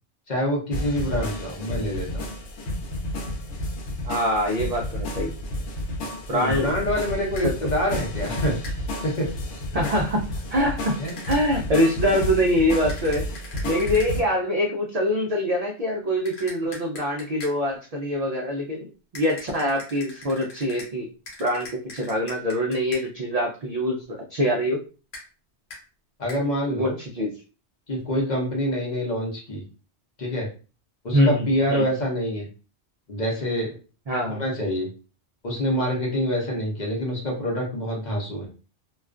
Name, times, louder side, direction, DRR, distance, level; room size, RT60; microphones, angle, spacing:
voice 1, 0.3-2.2 6.3-8.6 9.0-9.6 11.0-11.1 26.2-27.0 27.9-29.6 30.2-30.5 31.0-32.5 33.1-33.8 34.3-34.9 35.4-38.5, equal, 45° left, -1 dB, 0.7 m, -26 dB
sound 1, 0.7-14.2, left 1 dB, 90° left, 0.9 m, -31 dB
voice 2, 4.0-5.3 6.3-6.7 7.4-7.5 9.7-10.2 10.5-10.9 11.3-13.2 13.6-18.9 19.1-21.1 21.4-24.0 24.3-24.8 26.7-27.3 31.1-31.8 34.1-34.4, equal, 65° right, 0 dB, 0.4 m, -24 dB
sound 2, 7.4-7.5 8.6-8.8 11.1-11.4 12.9-14.1 16.3-17.6 19.1-20.9 21.3-23.0 25.1-25.3 25.7-25.8 26.3-26.4, left 2 dB, 70° left, 1.2 m, -41 dB
2.3 x 2.2 x 2.4 m, 0.34 s
omnidirectional pair, 1.2 m